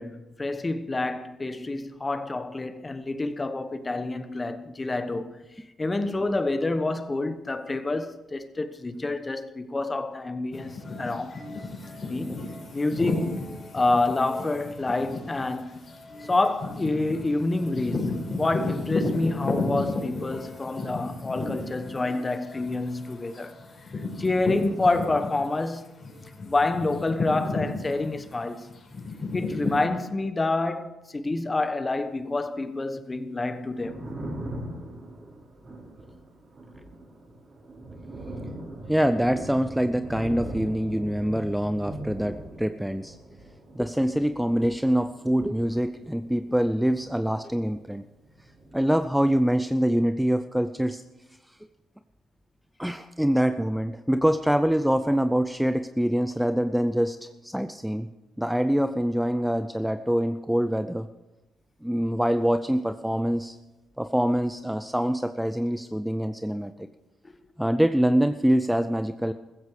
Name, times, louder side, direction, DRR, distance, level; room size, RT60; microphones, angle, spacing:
voice 1, 0.0-5.4 5.8-11.4 12.1-13.5 13.7-15.8 16.3-23.5 24.2-26.0 26.5-28.7 29.3-34.1 67.2-67.3, left 2 dB, 25° left, 1.2 m, -28 dB
sound 1, 10.5-25.7 26.0-29.8, left 2 dB, 40° left, 5.4 m, -33 dB
Thunder, 33.5-48.0 48.2-49.5, right 1 dB, 35° right, 4.5 m, -41 dB
voice 2, 38.9-43.2 43.8-48.0 48.7-51.0 52.8-58.1 58.4-61.1 61.8-63.6 64.0-66.9 67.6-69.3, equal, 5° right, 0.6 m, -25 dB
15.0 x 15.0 x 5.0 m
cardioid pair, 90°, 0 cm